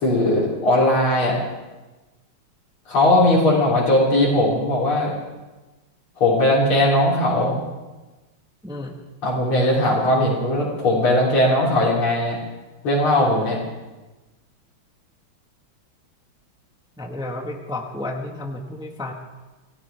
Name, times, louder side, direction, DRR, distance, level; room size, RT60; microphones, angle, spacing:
voice 1, 0.0-1.4 2.9-5.1 6.2-7.6 9.2-12.4 12.8-13.6, left 1 dB, 90° left, -6 dB, 4.2 m, -19 dB
voice 2, 8.6-8.9 17.0-19.1, left 2 dB, 5° right, 2 dB, 1.0 m, -32 dB
26.5 x 16.0 x 3.4 m, 1.1 s
omnidirectional pair, 2.3 m